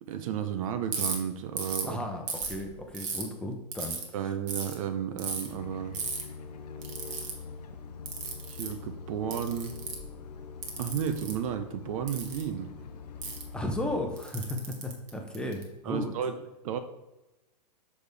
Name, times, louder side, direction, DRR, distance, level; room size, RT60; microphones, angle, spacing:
voice 1, 0.1-2.0 4.1-6.0 8.6-9.8 10.8-12.7 15.8-16.8, right 8 dB, 55° right, 9 dB, 0.7 m, -33 dB
Ratchet pawl, 0.9-1.1 1.6-1.9 2.3-3.2 3.7-4.0 4.5-4.7 5.2-5.5 5.9-6.2 6.8-7.3 8.1-8.7 9.3-10.1 10.6-11.3 12.1-12.4 13.2-13.4 14.2-15.6, right 5 dB, 35° right, 1.4 m, -34 dB
voice 2, 1.8-4.0 13.5-16.1, left 1 dB, 5° left, 2 dB, 0.8 m, -34 dB
sound 1, 5.5-14.1, left 5 dB, 70° left, 0.7 m, -44 dB
6.3 x 5.3 x 3.4 m, 1.0 s
hypercardioid pair, 120°, 21 cm